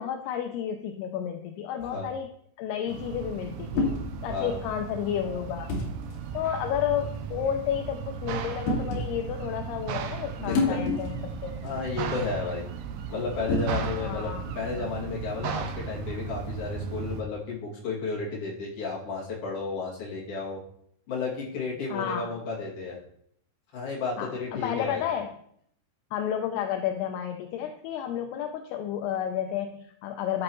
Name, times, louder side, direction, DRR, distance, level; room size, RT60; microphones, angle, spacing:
voice 1, 0.0-2.3 2.6-3.9 4.2-5.7 6.3-11.8 14.0-14.5 21.9-22.3 24.2-25.3 26.1-30.4, left 9 dB, 80° left, 6 dB, 2.5 m, -31 dB
sound 1, 1.8-2.1 3.8-4.1 5.7-5.9 7.0-7.2 8.7-9.1 10.4-11.3 11.7-11.8 13.5-14.0, left 2 dB, 60° left, 3.4 m, -28 dB
sound 2, 2.9-17.2, right 7 dB, 80° right, 2.6 m, -36 dB
voice 2, 4.3-4.6 10.4-11.0 11.6-12.7 13.1-14.3 14.5-20.6 21.1-23.0 23.7-25.0, left 4 dB, 40° left, -5 dB, 2.8 m, -33 dB
12.5 x 6.3 x 3.0 m, 0.68 s
omnidirectional pair, 4.9 m